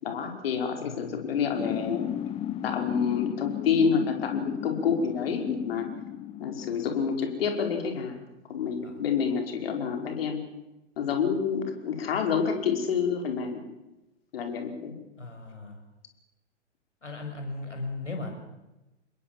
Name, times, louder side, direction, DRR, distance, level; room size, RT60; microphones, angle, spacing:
voice 1, 0.0-2.1 2.6-5.9 6.4-8.2 8.5-10.4 11.0-13.6 14.3-14.9, left 6 dB, 55° left, 4 dB, 5.2 m, -28 dB
voice 2, 0.8-1.2 8.8-9.0 15.2-15.8 17.0-18.4, left 2 dB, 80° left, 4 dB, 7.4 m, -37 dB
sound 1, 1.6-7.1, left 11 dB, 15° left, 0.8 m, -35 dB
27.5 x 21.5 x 7.5 m, 0.99 s
figure-of-eight pair, 110°, 36 cm